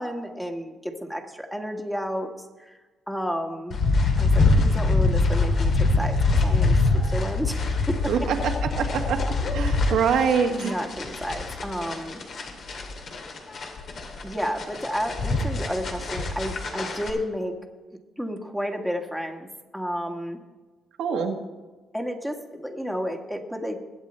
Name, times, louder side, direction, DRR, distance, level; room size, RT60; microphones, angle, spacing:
voice 1, 0.0-2.3 2.6-2.8 3.1-3.8 4.2-7.6 7.9-8.3 10.5-12.2 14.2-17.6 18.2-19.5 19.7-20.4 21.9-23.8, equal, 5° left, 3 dB, 1.7 m, -31 dB
sound 1, 3.7-17.1, left 3 dB, 55° left, 2.5 m, -24 dB
voice 2, 8.1-8.5 8.8-9.2 9.5-10.7 21.0-21.3, right 6 dB, 80° right, 3 dB, 1.6 m, -24 dB
21.5 x 8.2 x 4.4 m, 1.3 s
cardioid pair, 90°, 0 cm